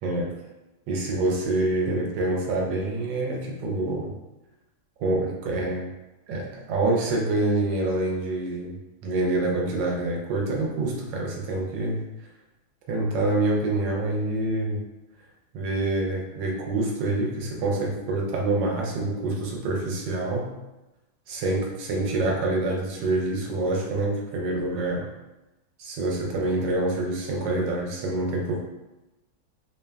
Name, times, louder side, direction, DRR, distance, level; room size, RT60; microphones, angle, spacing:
voice 1, 0.0-0.3 0.9-4.1 5.0-5.9 6.3-8.7 9.0-12.0 12.9-14.8 15.5-20.5 21.3-25.1 25.8-28.6, right 2 dB, 75° right, -1 dB, 1.2 m, -26 dB
3.2 x 2.1 x 2.2 m, 1.0 s
omnidirectional pair, 2.1 m